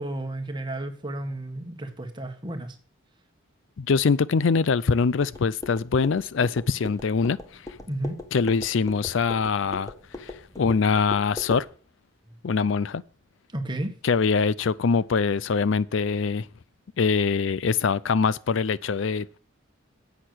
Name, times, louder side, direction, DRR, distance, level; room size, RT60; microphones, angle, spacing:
voice 1, 0.0-2.7 7.9-8.2 13.5-13.9, right 1 dB, 25° right, 1.6 m, -32 dB
voice 2, 3.8-7.6 8.3-9.9 10.2-11.7 12.4-13.0 14.0-16.5 17.0-19.4, left 5 dB, 70° left, 0.5 m, -23 dB
sound 1, 5.2-11.7, left 2 dB, 15° left, 1.4 m, -40 dB
10.0 x 8.1 x 6.3 m
head